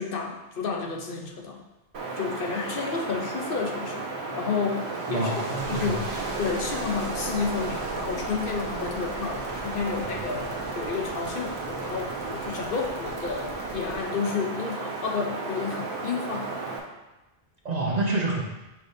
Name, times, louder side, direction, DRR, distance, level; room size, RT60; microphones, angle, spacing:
voice 1, 0.0-1.6 2.2-4.1 4.3-5.3 5.7-6.1 6.4-10.5 10.8-16.5, left 5 dB, 60° left, 2 dB, 0.8 m, -31 dB
Wind, 1.9-16.8, right 3 dB, 75° right, 1.1 m, -33 dB
voice 2, 5.1-6.0 17.6-18.4, right 2 dB, 45° right, 0 dB, 0.7 m, -27 dB
sound 1, 5.6-13.9, right 1 dB, 5° left, 1.0 m, -45 dB
6.6 x 5.7 x 2.6 m, 1.0 s
omnidirectional pair, 1.1 m